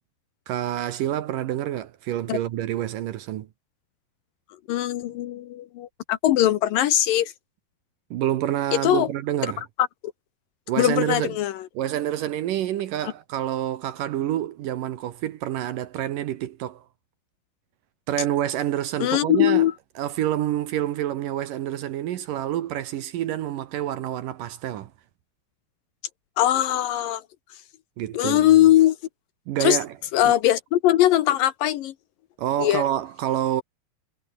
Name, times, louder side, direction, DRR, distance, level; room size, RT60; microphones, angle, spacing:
voice 1, 0.5-3.5 8.1-9.6 10.7-11.4 11.7-16.8 18.1-19.7 20.0-24.9 28.0-28.7 29.5-29.9 30.2-30.3 32.4-33.6, right 12 dB, 70° right, 2.4 m, -27 dB
voice 2, 4.7-7.3 8.8-9.1 9.8-9.9 10.8-11.6 19.0-19.7 26.4-27.2 28.1-29.0 29.6-29.8 30.1-31.9 32.6-32.8, left 13 dB, 70° left, 2.4 m, -20 dB
omnidirectional pair, 4.6 m